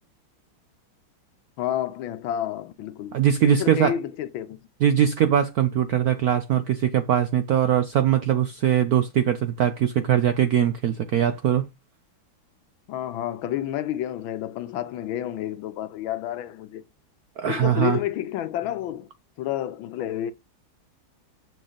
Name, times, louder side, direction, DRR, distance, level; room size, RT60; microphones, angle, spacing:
voice 1, 1.6-3.2 3.4-4.6 12.9-16.8 17.4-19.1 19.4-20.3, left 11 dB, 75° left, 1.5 m, -30 dB
voice 2, 3.1-3.9 4.8-11.7 17.4-18.0, right 10 dB, 75° right, 0.8 m, -21 dB
6.8 x 6.3 x 5.0 m
omnidirectional pair, 2.3 m